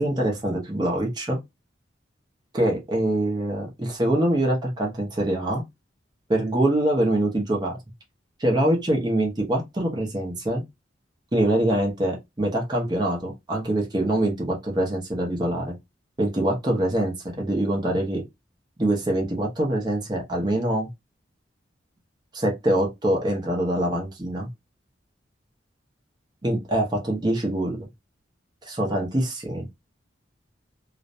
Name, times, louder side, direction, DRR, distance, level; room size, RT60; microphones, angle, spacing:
voice 1, 0.0-1.4 2.5-5.6 6.3-7.8 8.4-10.6 11.3-15.7 16.2-18.2 18.8-20.9 22.3-24.5 26.4-27.9 28.6-29.7, right 1 dB, 25° right, 0.6 m, -24 dB
2.5 x 2.1 x 2.5 m
head